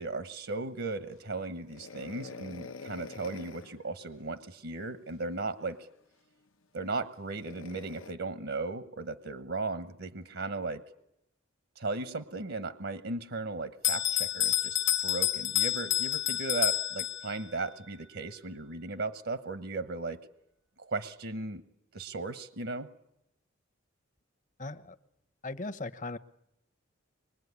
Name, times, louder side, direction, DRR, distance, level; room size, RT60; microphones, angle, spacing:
voice 1, 0.0-5.9 6.7-10.8 11.8-20.2 20.8-21.6 21.9-22.9, right 3 dB, 70° right, 11 dB, 1.2 m, -36 dB
sound 1, 1.7-3.8 5.6-5.7 7.3-8.1, left 4 dB, 85° left, 1.0 m, -46 dB
Bell, 13.8-17.6, left 12 dB, 60° left, 1.1 m, -29 dB
voice 2, 24.6-25.0 25.4-26.2, left 2 dB, 40° left, 12 dB, 1.0 m, -38 dB
25.5 x 22.0 x 9.6 m, 0.82 s
head